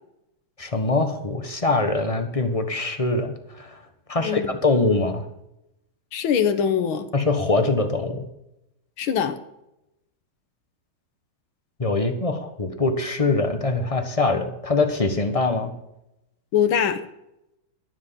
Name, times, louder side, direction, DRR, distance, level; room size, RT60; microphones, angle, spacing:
voice 1, 0.6-3.8 4.1-5.3 7.1-8.2 11.8-15.7, left 3 dB, 20° left, 6 dB, 1.0 m, -23 dB
voice 2, 4.2-4.5 6.1-7.1 9.0-9.4 16.5-17.0, left 8 dB, 80° left, 8 dB, 1.9 m, -22 dB
12.5 x 7.5 x 7.5 m, 0.86 s
omnidirectional pair, 2.2 m